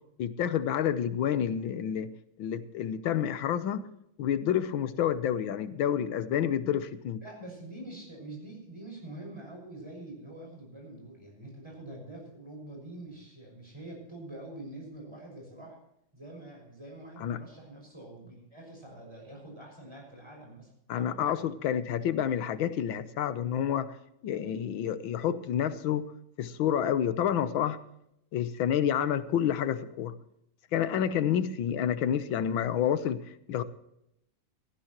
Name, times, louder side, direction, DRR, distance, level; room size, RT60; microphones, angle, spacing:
voice 1, 0.2-2.1 2.4-3.8 4.2-7.2 17.2-17.4 20.9-23.9 24.2-26.1 26.4-27.8 28.3-30.1 30.7-33.2 33.5-33.6, left 9 dB, 80° left, 1.6 m, -29 dB
voice 2, 7.2-15.8 16.1-20.7 21.0-21.5, right 1 dB, 15° right, 6.0 m, -45 dB
17.0 x 15.0 x 3.0 m
omnidirectional pair, 2.1 m